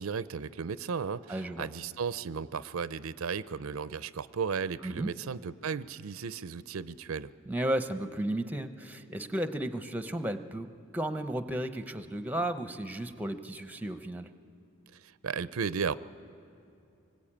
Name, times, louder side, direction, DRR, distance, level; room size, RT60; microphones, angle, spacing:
voice 1, 0.0-7.3 15.0-16.0, right 6 dB, 85° right, 15 dB, 0.5 m, -35 dB
voice 2, 1.3-1.7 4.8-5.1 7.5-10.7 10.9-14.3, right 1 dB, 10° right, 9 dB, 0.7 m, -33 dB
25.0 x 20.5 x 8.8 m, 2.5 s
head